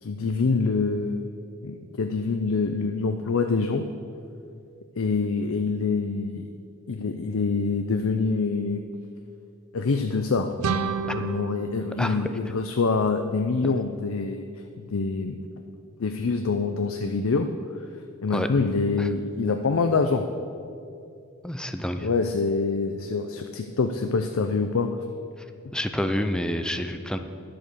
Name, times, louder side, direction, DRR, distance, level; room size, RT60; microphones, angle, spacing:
voice 1, 0.0-1.3 1.6-3.8 5.0-6.4 6.9-8.8 9.7-10.5 11.0-14.4 14.8-15.4 16.0-17.5 18.2-20.2 22.0-25.0, left 4 dB, 65° left, 6 dB, 0.5 m, -25 dB
sound 1, 10.6-13.4, right 5 dB, 80° right, 0.5 m, -32 dB
voice 2, 12.0-12.3 18.3-18.5 19.0-19.1 21.4-22.1 25.7-27.2, equal, 5° left, 8 dB, 0.5 m, -28 dB
10.5 x 7.7 x 6.7 m, 2.4 s
head